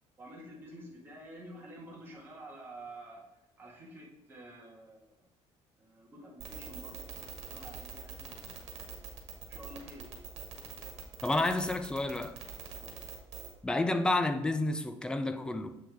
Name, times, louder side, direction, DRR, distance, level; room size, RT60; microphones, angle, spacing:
voice 1, 0.2-3.2 3.6-5.1 5.8-8.6 9.5-10.2 12.7-13.0, right 1 dB, 20° right, 1.6 m, -49 dB
sound 1, 6.4-13.5, right 7 dB, 70° right, 1.6 m, -44 dB
voice 2, 11.2-12.4 13.6-15.8, left 2 dB, 5° left, 0.4 m, -30 dB
7.7 x 6.0 x 3.5 m
cardioid pair, 165°, 11 cm